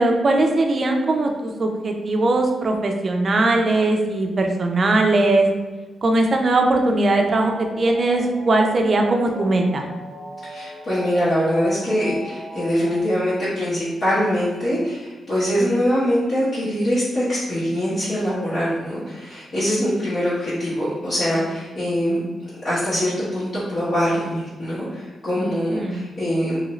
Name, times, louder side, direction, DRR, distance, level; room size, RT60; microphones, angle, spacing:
voice 1, 0.0-5.5 6.0-9.8 15.6-15.8 25.7-26.0, right 2 dB, 40° right, 3 dB, 0.4 m, -20 dB
sound 1, 7.0-13.0, equal, 20° left, 0.8 m, -36 dB
voice 2, 10.4-22.2 22.6-26.6, equal, 50° left, -12 dB, 1.0 m, -23 dB
2.8 x 2.5 x 3.0 m, 1.3 s
cardioid pair, 120°, 0 cm